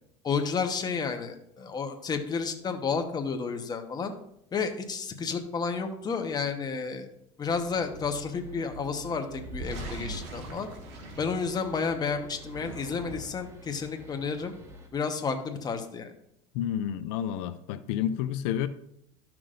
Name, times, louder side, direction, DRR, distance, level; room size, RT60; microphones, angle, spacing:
voice 1, 0.2-4.1 4.5-7.1 7.4-10.7 11.2-14.5 14.9-16.1, left 5 dB, 25° left, 1.1 m, -31 dB
sound 1, 7.4-14.9, right 1 dB, 20° right, 1.4 m, -48 dB
sound 2, 9.3-11.9 12.4-13.5, right 1 dB, 80° right, 1.7 m, -41 dB
voice 2, 16.5-18.7, left 10 dB, 75° left, 0.5 m, -30 dB
12.5 x 6.0 x 2.6 m
supercardioid pair, 100°, 15 cm